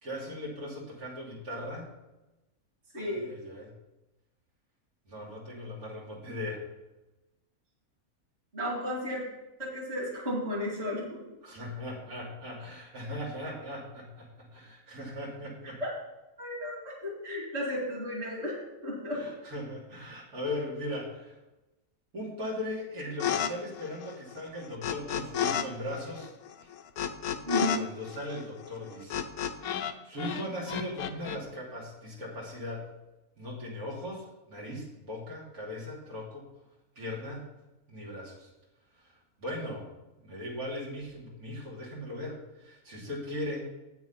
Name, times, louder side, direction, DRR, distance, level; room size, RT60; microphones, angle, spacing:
voice 1, 0.0-1.9 2.9-3.7 5.1-6.6 11.4-15.8 19.1-21.3 22.1-26.3 26.6-26.7 27.7-29.2 29.5-32.9 33.4-36.4 36.9-37.4 37.9-38.5 39.4-39.9 40.2-43.6, left 1 dB, 85° right, -5 dB, 3.4 m, -38 dB
voice 2, 2.9-3.2 8.5-9.2 9.6-11.2 15.8-15.9 16.4-18.6 18.8-19.2 27.5-27.9, equal, 45° right, -4 dB, 2.8 m, -33 dB
sound 1, 23.2-23.5 23.8-25.6 25.9-29.9 30.2-31.4, left 9 dB, 80° left, 1.2 m, -32 dB
8.6 x 7.1 x 5.7 m, 1.0 s
omnidirectional pair, 1.5 m